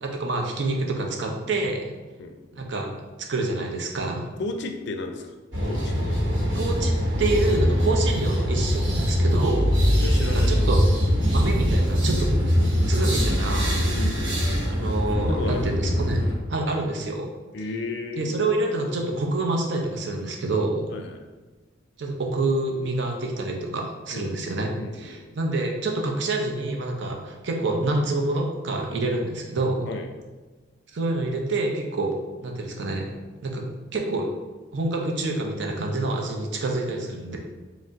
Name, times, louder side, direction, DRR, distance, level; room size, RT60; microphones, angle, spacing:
voice 1, 0.0-1.9 2.5-2.9 3.3-4.2 6.5-9.8 10.3-10.8 11.3-12.3 12.9-13.7 14.7-16.2 16.5-17.3 18.2-20.9 22.0-24.7 25.0-29.9 30.9-32.1 32.4-33.1 33.4-33.6 33.9-34.3 34.7-37.4, right 2 dB, 65° right, 1 dB, 0.6 m, -27 dB
voice 2, 4.4-5.3 5.6-6.2 9.9-10.8 13.9-14.3 15.1-15.7 17.5-18.2 20.9-21.2 24.1-24.3 24.8-25.2 29.9-30.1, left 3 dB, 65° left, 4 dB, 0.4 m, -33 dB
sound 1, 5.5-16.3, equal, 90° right, 0.9 m, -22 dB
5.0 x 2.0 x 3.5 m, 1.2 s
head